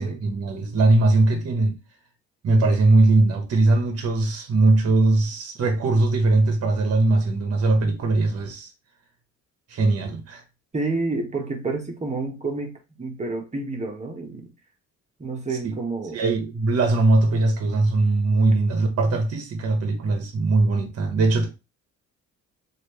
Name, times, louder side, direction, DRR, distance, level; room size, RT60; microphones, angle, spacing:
voice 1, 0.0-1.8 2.4-8.7 9.7-10.4 15.6-15.8 16.1-21.5, right 2 dB, 55° right, 0.9 m, -20 dB
voice 2, 10.7-12.7 13.0-14.5 15.2-16.2, right 3 dB, 25° right, 1.1 m, -29 dB
3.1 x 2.6 x 3.1 m
cardioid pair, 90°, 30 cm